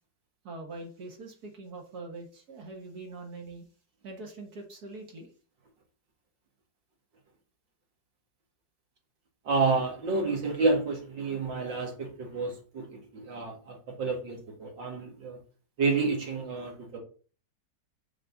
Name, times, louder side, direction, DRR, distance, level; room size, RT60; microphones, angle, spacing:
voice 1, 0.4-3.7 4.0-5.3, right 2 dB, 60° right, 1.9 m, -43 dB
voice 2, 9.4-15.4 15.8-17.0, right 3 dB, 85° right, 2.6 m, -29 dB
6.6 x 4.0 x 5.9 m
omnidirectional pair, 1.9 m